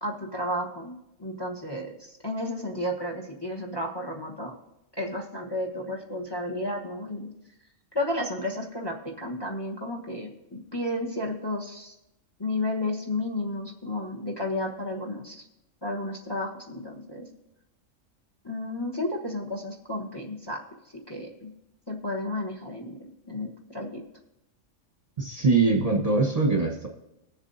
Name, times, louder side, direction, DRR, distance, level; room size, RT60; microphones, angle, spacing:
voice 1, 0.0-0.9 1.2-4.5 5.0-7.3 7.9-11.9 12.4-15.4 15.8-17.2 18.4-20.6 21.1-21.5 21.9-22.9 23.3-24.0, left 1 dB, 20° left, 1 dB, 1.1 m, -32 dB
voice 2, 25.2-26.9, right 3 dB, 30° right, 0 dB, 1.0 m, -22 dB
21.0 x 7.2 x 2.7 m, 0.87 s
omnidirectional pair, 1.4 m